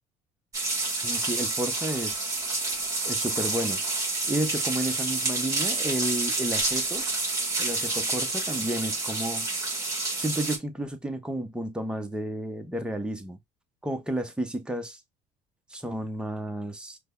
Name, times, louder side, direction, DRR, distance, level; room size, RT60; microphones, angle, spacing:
sound 1, 0.5-10.6, right 3 dB, 25° right, 1.6 m, -29 dB
voice 1, 1.0-2.4 3.0-3.8 4.3-7.1 7.6-9.5 10.2-13.4 13.8-15.0 15.7-17.0, right 1 dB, 5° right, 0.8 m, -32 dB
5.0 x 2.2 x 2.3 m
cardioid pair, 105°, 15 cm